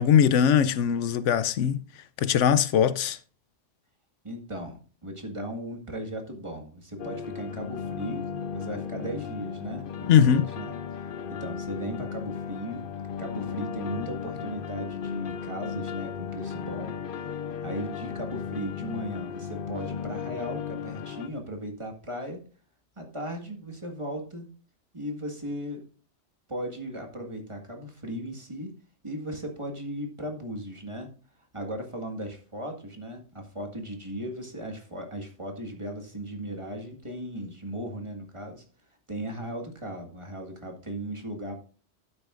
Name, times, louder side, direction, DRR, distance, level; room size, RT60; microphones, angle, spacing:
voice 1, 0.0-1.8 2.2-3.2 10.1-10.4, left 8 dB, 80° left, 0.9 m, -20 dB
voice 2, 4.2-10.7 11.3-12.9 13.2-17.3 17.6-22.4 23.0-24.5 24.9-25.8 26.5-28.7 29.0-31.1 31.5-38.6 39.1-41.6, right 1 dB, 25° right, 1.9 m, -37 dB
sound 1, 7.0-21.3, left 7 dB, 55° left, 0.8 m, -35 dB
12.0 x 9.6 x 2.5 m
omnidirectional pair, 1.2 m